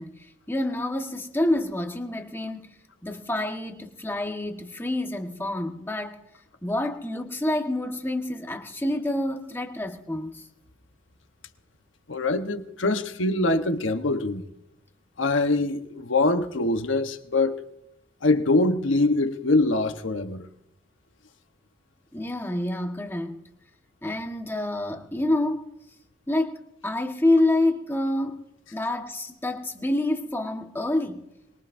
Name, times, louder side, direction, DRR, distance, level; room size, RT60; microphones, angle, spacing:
voice 1, 0.0-2.7 3.0-6.2 6.6-10.4 22.1-23.4 24.0-25.6 26.3-26.6 26.8-28.4 28.7-31.3, left 1 dB, 10° left, 1.4 m, -27 dB
voice 2, 12.1-14.4 15.2-17.6 18.2-20.5, left 2 dB, 85° left, 1.1 m, -23 dB
24.5 x 22.0 x 2.6 m
head